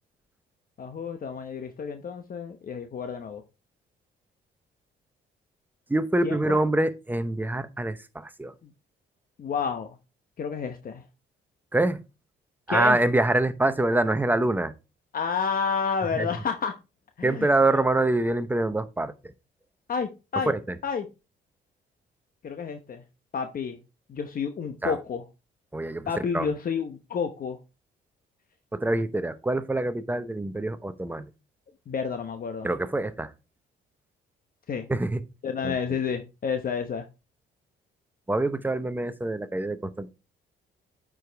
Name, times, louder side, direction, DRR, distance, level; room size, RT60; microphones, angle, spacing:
voice 1, 0.8-3.4 6.2-6.6 9.4-10.0 10.4-11.0 12.7-13.0 15.1-16.7 17.2-17.8 19.9-20.5 20.8-21.1 22.4-23.0 23.3-23.8 24.1-25.2 26.1-27.6 31.9-32.7 34.7-34.9 35.4-37.0, left 6 dB, 45° left, 7 dB, 0.9 m, -30 dB
voice 2, 5.9-8.5 11.7-12.0 12.7-14.7 16.1-16.3 17.2-19.3 20.5-20.8 24.8-25.0 25.7-26.5 28.7-31.3 32.6-33.3 34.9-35.2 35.6-36.0 38.3-40.1, right 2 dB, 10° right, 11 dB, 0.8 m, -25 dB
9.1 x 4.9 x 3.4 m, 0.28 s
cardioid pair, 90°, 20 cm